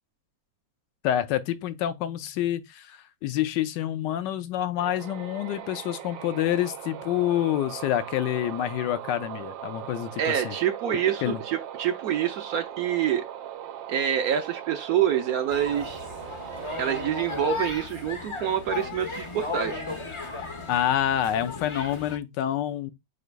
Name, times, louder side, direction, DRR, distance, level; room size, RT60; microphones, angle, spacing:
voice 1, 1.0-10.6 11.2-11.4 20.7-22.9, left 11 dB, 80° left, 1.2 m, -27 dB
sound 1, 4.8-17.5, right 11 dB, 85° right, 1.4 m, -39 dB
voice 2, 10.2-13.3 13.9-16.0 16.8-19.8, right 9 dB, 70° right, 0.9 m, -26 dB
sound 2, 15.5-22.2, left 3 dB, 35° left, 0.4 m, -35 dB
5.0 x 2.3 x 4.5 m
omnidirectional pair, 2.0 m